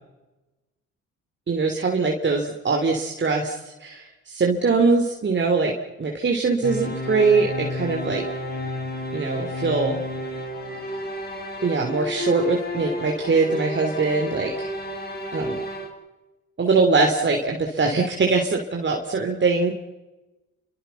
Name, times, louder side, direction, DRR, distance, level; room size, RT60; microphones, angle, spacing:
voice 1, 1.5-8.2 9.1-10.0 11.6-14.7 15.3-15.6 16.6-19.7, right 4 dB, 40° right, 1 dB, 3.5 m, -22 dB
sound 1, 6.6-15.9, left 1 dB, 30° left, 7.0 m, -31 dB
29.5 x 24.5 x 5.9 m, 1.1 s
cardioid pair, 90°, 30 cm